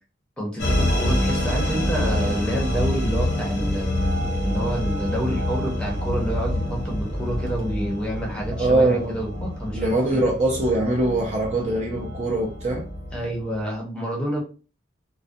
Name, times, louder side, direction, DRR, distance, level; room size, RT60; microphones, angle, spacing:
voice 1, 0.4-10.3 13.1-14.4, right 1 dB, 5° left, 0.6 m, -28 dB
sound 1, 0.6-13.6, left 1 dB, 60° left, 0.7 m, -27 dB
sound 2, 2.5-8.0, equal, 90° right, 0.7 m, -39 dB
voice 2, 8.6-9.2 9.7-12.9, right 2 dB, 35° right, 0.4 m, -22 dB
2.3 x 2.1 x 2.5 m
head